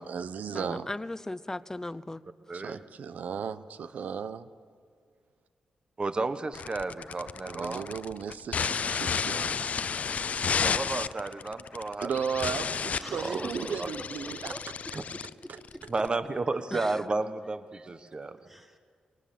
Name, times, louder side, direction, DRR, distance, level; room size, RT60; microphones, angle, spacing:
voice 1, 0.0-0.9 2.5-4.5 7.4-9.7 12.0-14.5, right 7 dB, 80° right, 13 dB, 0.9 m, -35 dB
voice 2, 0.5-2.2 2.5-2.6 16.7-17.0, left 2 dB, 20° left, 14 dB, 0.7 m, -37 dB
voice 3, 2.5-2.8 6.0-7.9 10.6-12.1 12.4-12.8 13.2-13.5 13.8-13.9 15.9-18.4, right 3 dB, 35° right, 11 dB, 1.3 m, -32 dB
sound 1, 6.5-16.1, left 6 dB, 60° left, 0.5 m, -32 dB
voice 4, 13.0-15.8 18.4-18.8, equal, 10° right, 2 dB, 3.5 m, -45 dB
21.5 x 19.0 x 7.7 m, 2.1 s
cardioid pair, 65°, 3 cm